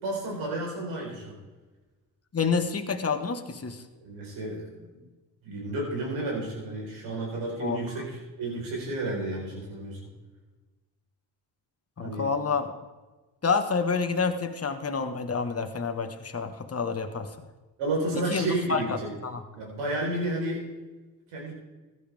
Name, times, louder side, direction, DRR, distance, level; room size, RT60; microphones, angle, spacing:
voice 1, 0.0-1.3 4.0-5.0 5.4-10.0 12.0-12.3 17.8-19.1 19.5-20.6 21.3-21.5, right 2 dB, 90° right, -2 dB, 4.5 m, -31 dB
voice 2, 2.3-3.8 7.6-8.0 12.0-12.7 13.4-17.3 18.1-19.0 19.2-19.4, left 5 dB, 30° left, 6 dB, 1.5 m, -28 dB
15.0 x 11.5 x 3.5 m, 1.2 s
supercardioid pair, 55°, 46 cm